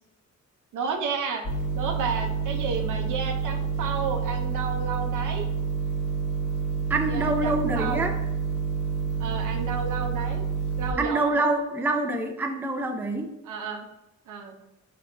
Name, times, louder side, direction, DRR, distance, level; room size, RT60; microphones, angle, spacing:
voice 1, 0.7-1.5 1.7-5.5 7.1-8.1 9.2-10.4 10.8-11.5 13.5-13.9 14.3-14.6, right 5 dB, 80° right, 4 dB, 0.6 m, -32 dB
sound 1, 1.4-10.9, right 5 dB, 80° left, 1.3 m, -28 dB
voice 2, 6.9-8.2 11.0-13.3, right 2 dB, 5° right, 5 dB, 0.3 m, -26 dB
4.5 x 3.0 x 2.6 m, 0.98 s
cardioid pair, 90°, 31 cm